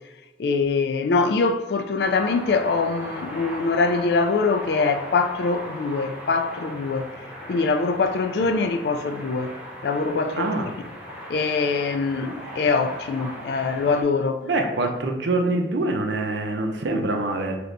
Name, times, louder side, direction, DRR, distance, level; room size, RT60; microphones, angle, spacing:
voice 1, 0.4-7.1 7.5-9.6 9.8-10.6 11.3-14.4, left 4 dB, 65° left, 0.3 m, -23 dB
sound 1, 2.0-14.0, equal, 10° right, 0.6 m, -38 dB
voice 2, 10.3-10.7 14.4-17.6, right 2 dB, 85° right, 0.6 m, -25 dB
3.2 x 2.9 x 3.8 m
head